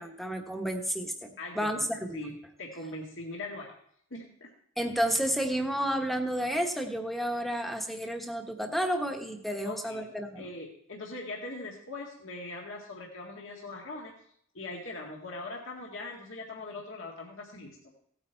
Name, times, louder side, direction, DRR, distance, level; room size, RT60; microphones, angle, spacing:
voice 1, 0.0-1.8 2.1-2.3 4.8-10.4, equal, ahead, 4 dB, 1.2 m, -31 dB
voice 2, 1.4-1.9 2.1-3.7 4.1-4.5 9.6-14.1 14.5-17.9, left 2 dB, 65° left, -2 dB, 1.9 m, -41 dB
16.5 x 8.9 x 4.5 m, 0.67 s
head